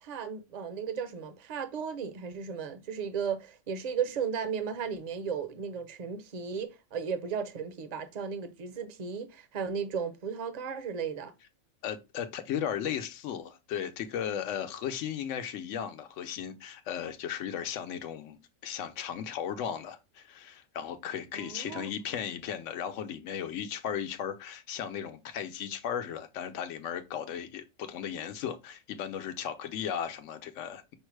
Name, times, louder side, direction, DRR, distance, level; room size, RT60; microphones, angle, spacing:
voice 1, 0.0-11.3 21.3-21.9, right 6 dB, 40° right, 0.6 m, -35 dB
voice 2, 11.8-18.4 18.6-30.9, left 9 dB, 75° left, 1.0 m, -36 dB
5.5 x 2.1 x 4.6 m
omnidirectional pair, 1.3 m